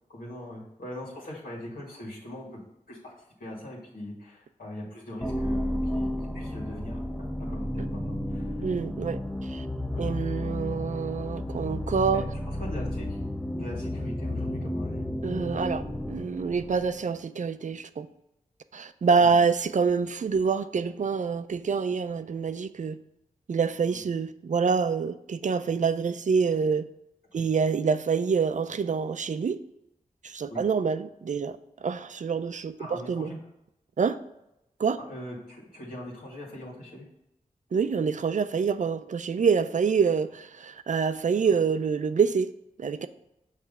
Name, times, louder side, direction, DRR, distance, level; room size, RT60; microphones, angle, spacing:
voice 1, 0.1-2.5 2.9-3.1 3.4-6.1 6.3-7.0 7.4-8.7 9.9-10.1 12.1-12.2 12.6-13.2 13.6-15.0 23.8-24.0 27.3-27.4 30.5-30.6 32.8-33.4 35.1-37.1, left 1 dB, 80° left, 1.9 m, -41 dB
sound 1, 5.2-17.1, left 1 dB, 5° left, 0.5 m, -32 dB
voice 2, 8.6-9.6 10.0-12.3 15.2-15.8 16.1-18.1 18.7-23.0 23.5-26.9 27.3-29.6 30.2-33.3 34.0-34.2 34.8-35.0 37.7-42.5 42.8-43.1, right 5 dB, 55° right, 0.4 m, -26 dB
5.9 x 3.1 x 5.4 m
cardioid pair, 45°, 15 cm